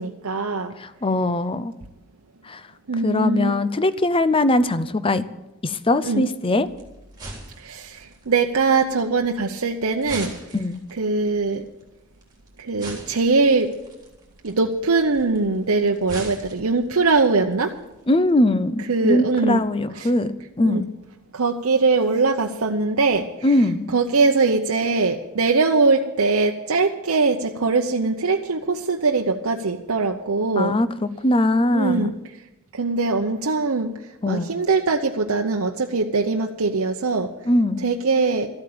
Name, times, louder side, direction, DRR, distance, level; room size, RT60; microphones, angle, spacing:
voice 1, 0.0-0.7 2.9-3.5 6.1-6.3 7.6-10.3 11.0-11.7 12.6-13.7 14.4-17.7 18.9-19.6 20.0-20.1 20.6-20.9 21.3-23.5 23.9-30.7 31.7-32.2 32.7-33.9 34.3-37.3 37.8-38.5, right 3 dB, 75° right, 2 dB, 0.8 m, -21 dB
voice 2, 0.8-1.7 2.4-2.6 3.0-5.2 5.6-6.7 10.5-10.8 18.1-20.9 23.4-23.9 30.6-30.9 31.2-32.1 34.2-34.6 37.5-37.9, left 1 dB, 25° left, 14 dB, 0.6 m, -21 dB
sound 1, 6.6-18.4, right 2 dB, 20° right, 3.5 m, -43 dB
14.0 x 8.8 x 8.6 m, 0.96 s
head